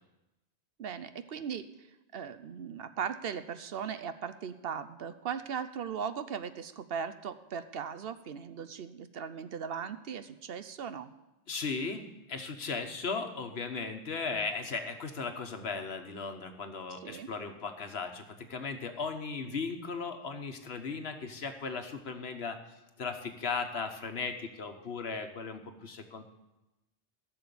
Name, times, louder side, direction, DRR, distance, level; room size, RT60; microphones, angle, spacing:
voice 1, 0.8-1.6 2.1-11.1 17.0-17.3, right 7 dB, 65° right, 11 dB, 0.9 m, -38 dB
voice 2, 11.5-22.6 23.0-26.2, left 4 dB, 75° left, 6 dB, 1.4 m, -37 dB
14.5 x 6.9 x 6.9 m, 0.97 s
omnidirectional pair, 1.1 m